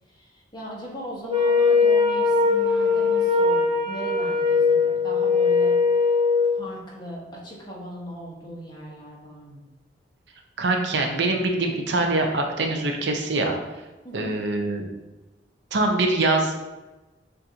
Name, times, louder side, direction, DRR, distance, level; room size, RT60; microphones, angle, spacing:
voice 1, 0.2-5.8 6.5-9.6 14.0-14.4, equal, 25° left, -4 dB, 1.1 m, -38 dB
Wind instrument woodwind instrument, 1.3-6.5, left 4 dB, 25° right, 1.0 m, -20 dB
voice 2, 10.6-13.6 14.1-14.8 15.7-16.7, right 2 dB, 75° right, 3 dB, 0.6 m, -24 dB
6.5 x 2.6 x 2.8 m, 1.1 s
head